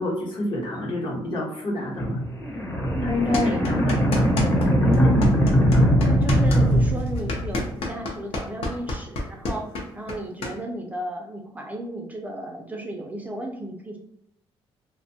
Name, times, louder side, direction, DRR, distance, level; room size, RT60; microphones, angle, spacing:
voice 1, 0.0-2.1 3.0-3.9 4.8-5.3, left 1 dB, 50° left, -2 dB, 0.9 m, -26 dB
sound 1, 2.0-7.8, equal, 25° left, 0.7 m, -21 dB
voice 2, 2.9-3.8 6.0-14.0, right 1 dB, 15° right, 1 dB, 0.4 m, -34 dB
sound 2, 3.3-4.7 4.9-10.5, left 2 dB, 70° left, 0.6 m, -29 dB
2.5 x 2.2 x 2.7 m, 0.74 s
cardioid pair, 115°, 10 cm